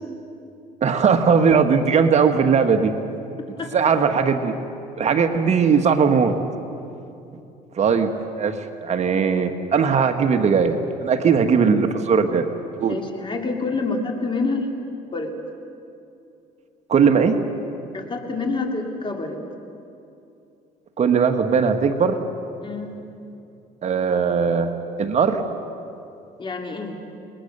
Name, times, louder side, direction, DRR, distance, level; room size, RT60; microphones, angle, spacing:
voice 1, 0.8-2.9 3.7-4.5 5.0-6.4 7.7-8.1 8.4-12.5 12.8-13.0 16.9-17.4 21.0-22.2 23.8-24.7 25.0-25.4, right 6 dB, 40° right, 6 dB, 1.5 m, -19 dB
voice 2, 12.9-14.8 15.1-15.3 17.9-19.4 22.6-22.9 26.4-27.0, left 3 dB, 30° left, 3 dB, 3.1 m, -27 dB
29.5 x 20.5 x 6.8 m, 2.7 s
cardioid pair, 110°, 17 cm